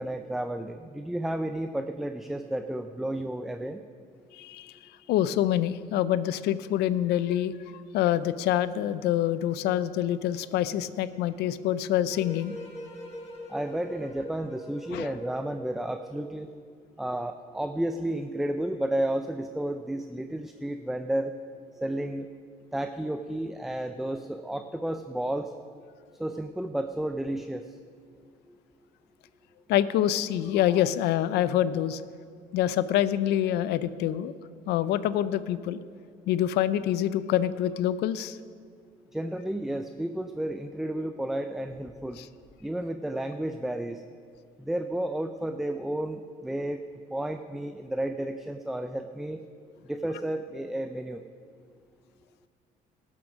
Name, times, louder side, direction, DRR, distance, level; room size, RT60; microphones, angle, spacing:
voice 1, 0.0-3.8 13.5-16.5 17.0-21.3 21.8-22.3 22.7-25.5 26.2-27.6 39.1-42.2 42.6-44.0 44.6-46.8 47.1-49.4 49.9-51.2, right 1 dB, ahead, 7 dB, 0.4 m, -32 dB
voice 2, 4.3-4.7 5.1-12.6 14.9-15.1 29.7-32.0 32.5-34.3 34.7-35.8 36.3-38.4 42.2-42.3, left 11 dB, 80° left, 15 dB, 0.5 m, -26 dB
sound 1, 12.1-16.4, left 1 dB, 40° left, 1.7 m, -42 dB
13.0 x 7.5 x 6.1 m, 2.1 s
cardioid pair, 110°, 17 cm